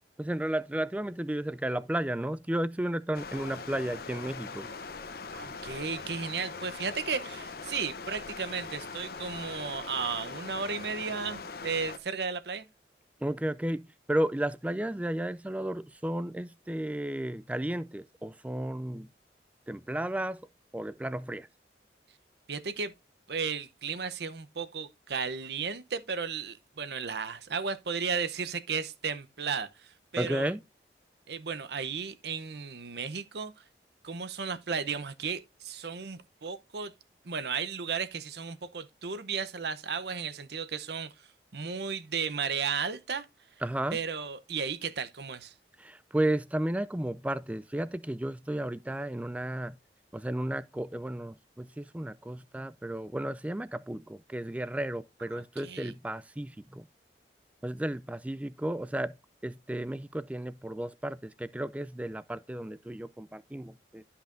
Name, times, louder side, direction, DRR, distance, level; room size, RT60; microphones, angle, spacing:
voice 1, 0.2-4.7 13.2-19.1 19.7-20.4 20.7-21.5 30.2-30.6 43.6-44.0 45.8-49.8 50.1-56.8 57.6-59.1 59.4-64.0, right 1 dB, 10° right, 0.3 m, -33 dB
Stream, 3.1-12.0, left 4 dB, 55° left, 0.8 m, -41 dB
voice 2, 5.3-12.7 22.5-22.9 23.3-30.5 31.3-33.6 34.0-36.9 37.2-41.1 41.5-43.3 43.9-45.5 55.3-55.9, right 5 dB, 70° right, 0.7 m, -34 dB
12.5 x 5.6 x 2.5 m
head